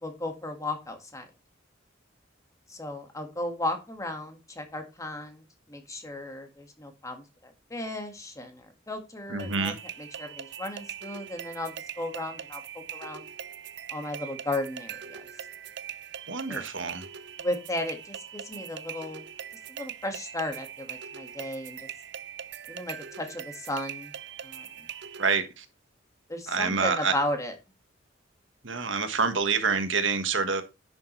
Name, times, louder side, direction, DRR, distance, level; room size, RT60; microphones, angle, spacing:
voice 1, 0.0-1.3 2.7-9.7 10.0-13.3 13.9-15.2 16.5-16.6 17.4-19.2 19.7-21.9 22.7-24.1 24.4-24.9 26.3-27.5, left 1 dB, 15° left, 1.9 m, -35 dB
voice 2, 9.3-9.8 16.3-17.0 25.2-25.6 26.5-27.1 28.6-30.6, right 5 dB, 80° right, 1.5 m, -27 dB
sound 1, 9.4-25.4, right 9 dB, 60° right, 0.5 m, -42 dB
10.5 x 7.1 x 3.3 m
head